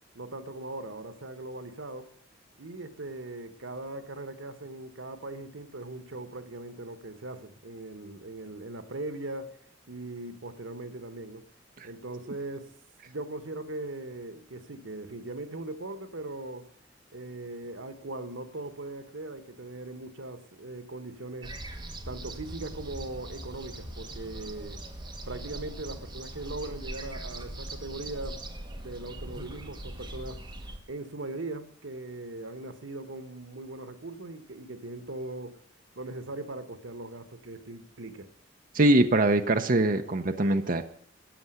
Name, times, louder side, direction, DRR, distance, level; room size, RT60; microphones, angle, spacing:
voice 1, 0.1-2.1 2.6-9.6 9.9-11.4 11.8-12.7 13.0-16.7 17.1-21.5 22.1-24.8 25.3-28.4 28.7-30.4 30.9-35.6 35.9-38.3, right 2 dB, 90° right, 1.4 m, -39 dB
sound 1, 21.4-30.8, right 1 dB, 25° right, 1.9 m, -41 dB
voice 2, 38.7-40.8, right 2 dB, 45° right, 0.8 m, -22 dB
14.0 x 8.7 x 8.0 m
head